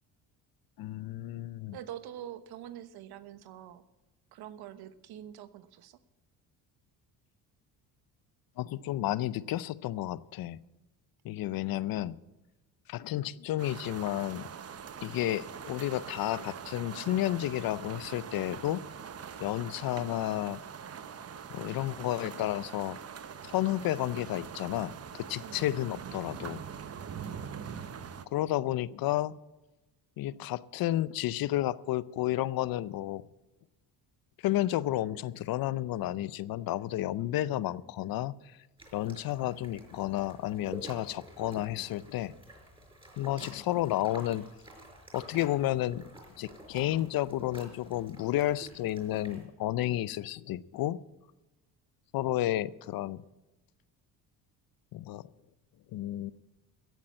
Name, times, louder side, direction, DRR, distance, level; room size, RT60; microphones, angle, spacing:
voice 1, 0.8-1.8 8.6-10.6 11.2-12.2 12.9-14.5 15.0-18.8 19.4-20.6 21.5-23.0 23.5-26.6 28.3-29.3 30.2-33.2 34.4-38.3 38.9-42.3 43.2-44.4 45.1-46.0 46.4-51.0 52.1-53.2 54.9-55.2 55.9-56.3, left 14 dB, 60° left, 19 dB, 0.6 m, -31 dB
voice 2, 1.7-3.8 4.3-6.0 25.4-25.6 27.0-27.2, right 11 dB, 65° right, 13 dB, 1.1 m, -45 dB
sound 1, 13.6-28.3, right 7 dB, 35° right, 1.0 m, -43 dB
sound 2, 38.8-49.4, right 1 dB, 10° right, 5.1 m, -50 dB
14.5 x 8.5 x 7.5 m, 1.1 s
supercardioid pair, 90°, 41 cm